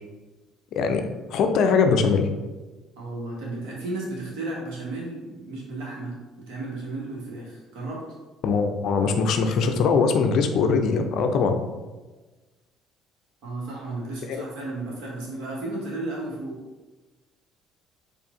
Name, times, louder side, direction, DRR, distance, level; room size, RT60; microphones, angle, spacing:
voice 1, 0.7-1.0 1.3-2.3 8.4-11.6 14.3-14.4, left 5 dB, 60° left, 6 dB, 0.4 m, -21 dB
voice 2, 3.0-8.0 13.4-16.6, right 2 dB, 65° right, -3 dB, 1.4 m, -34 dB
4.7 x 2.5 x 3.7 m, 1.2 s
figure-of-eight pair, 50°, 0 cm